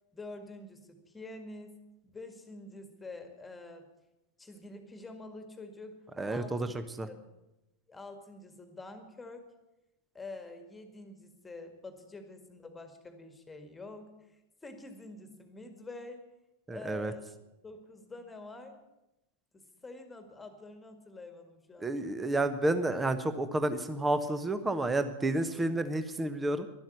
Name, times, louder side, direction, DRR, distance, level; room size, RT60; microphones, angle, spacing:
voice 1, 0.1-1.8 2.0-3.9 4.4-6.7 7.1-7.3 7.9-9.5 10.1-14.1 14.6-16.2 16.7-17.2 17.6-18.8 19.5-21.9, left 2 dB, 10° left, 7 dB, 1.8 m, -47 dB
voice 2, 6.2-6.7 7.0-7.1 16.7-17.1 21.8-26.7, right 2 dB, 10° right, 11 dB, 0.9 m, -30 dB
12.0 x 11.5 x 8.1 m, 0.96 s
figure-of-eight pair, 90°, 0 cm